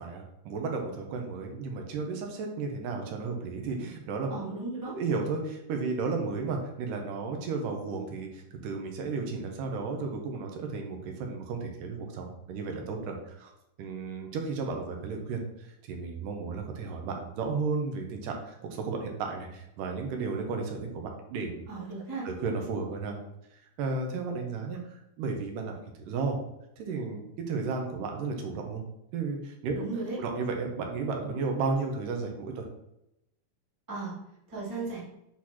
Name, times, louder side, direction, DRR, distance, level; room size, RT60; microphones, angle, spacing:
voice 1, 0.0-4.6 4.9-13.5 13.8-21.6 22.2-23.2 23.8-26.4 26.8-28.8 29.1-29.8 30.2-32.6, right 4 dB, 80° right, 3 dB, 2.4 m, -33 dB
voice 2, 4.3-4.9 21.7-22.3 29.7-30.2 33.9-34.1 34.5-35.0, right 3 dB, 15° right, -7 dB, 0.6 m, -35 dB
8.4 x 3.9 x 3.0 m, 0.84 s
omnidirectional pair, 3.9 m